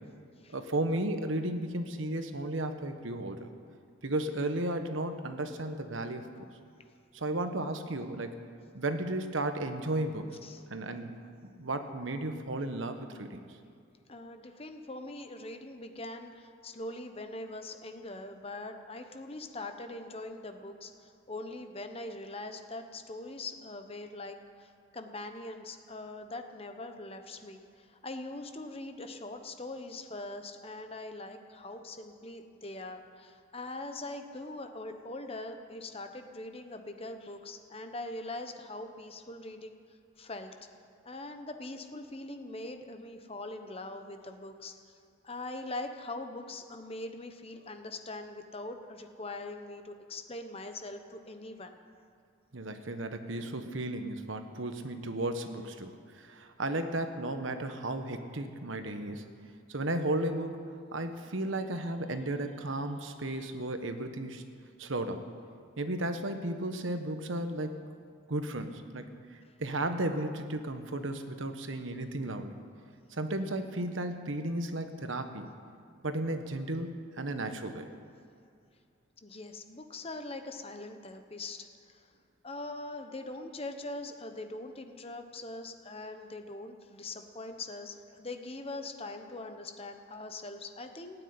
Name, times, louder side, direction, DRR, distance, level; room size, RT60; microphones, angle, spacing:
voice 1, 0.5-3.5 4.0-6.3 7.1-8.4 8.7-10.4 10.7-11.1 11.6-13.4 52.5-59.3 59.7-60.6 60.9-64.4 64.8-65.3 65.8-67.7 68.3-72.6 73.1-75.5 76.0-77.9, right 1 dB, 75° right, 8 dB, 1.2 m, -34 dB
voice 2, 14.1-39.7 40.2-40.6 41.0-44.9 45.2-51.8 79.2-82.1 82.4-91.2, left 2 dB, 30° left, 6 dB, 1.0 m, -42 dB
16.5 x 9.1 x 9.6 m, 2.4 s
head